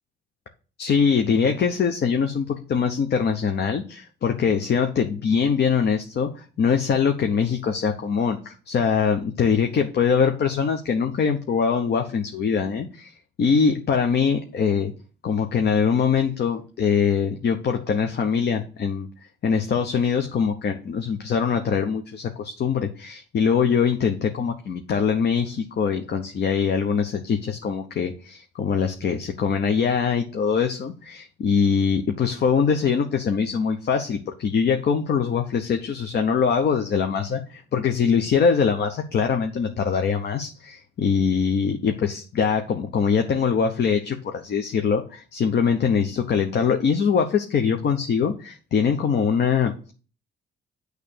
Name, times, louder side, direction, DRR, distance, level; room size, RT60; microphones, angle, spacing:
voice 1, 0.8-14.9 15.2-19.1 19.4-37.4 37.7-49.9, left 6 dB, 55° left, 5 dB, 1.0 m, -23 dB
8.9 x 3.3 x 6.7 m, 0.38 s
cardioid pair, 90°, 20 cm